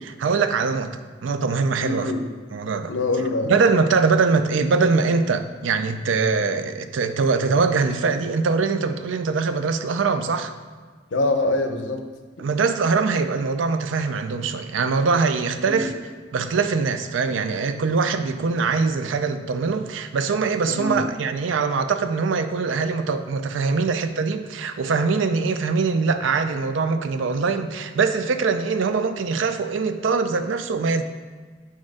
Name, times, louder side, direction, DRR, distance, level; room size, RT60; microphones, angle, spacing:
voice 1, 0.2-2.1 2.5-2.9 3.5-10.5 12.4-15.9 16.3-31.0, right 4 dB, 85° right, 9 dB, 0.4 m, -22 dB
voice 2, 1.8-2.3 2.9-3.5 11.1-12.1 15.7-15.9 20.6-21.0, left 2 dB, 85° left, 6 dB, 0.6 m, -24 dB
4.9 x 4.3 x 4.8 m, 1.5 s
head